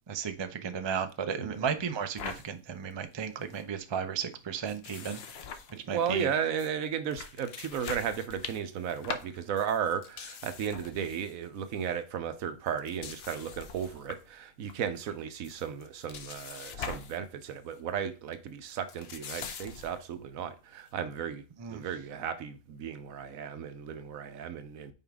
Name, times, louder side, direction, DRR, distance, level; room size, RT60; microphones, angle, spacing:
voice 1, 0.1-5.2 5.9-6.3 21.6-21.8, right 7 dB, 35° right, 0.4 m, -34 dB
voice 2, 1.4-1.7 5.7-21.4 21.7-24.9, right 8 dB, 85° right, 1.2 m, -35 dB
sound 1, 2.2-2.5 2.9-3.0 3.2-3.6 4.7-6.2 6.6-6.7 7.1-11.3 11.6-11.9 12.7-14.3 14.7-15.1 15.4-17.2 17.5-17.8 18.7-20.1, left 6 dB, 55° left, 0.8 m, -43 dB
5.6 x 4.7 x 3.5 m
omnidirectional pair, 1.4 m